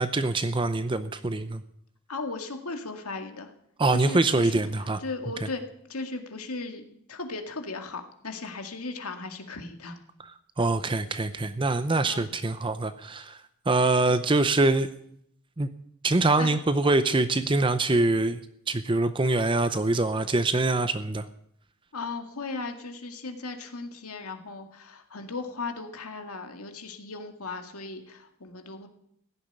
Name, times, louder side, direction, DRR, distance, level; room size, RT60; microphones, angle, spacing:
voice 1, 0.0-1.6 3.8-5.0 10.6-13.4 13.7-14.9 15.6-15.7 16.0-18.4 18.7-21.3, right 2 dB, 20° right, 11 dB, 0.6 m, -24 dB
voice 2, 2.1-3.5 3.9-5.6 5.9-6.8 7.1-10.0 12.1-12.3 14.1-14.2 16.4-16.5 21.9-28.9, left 3 dB, 80° left, 5 dB, 2.0 m, -37 dB
16.0 x 7.2 x 10.0 m, 0.71 s
head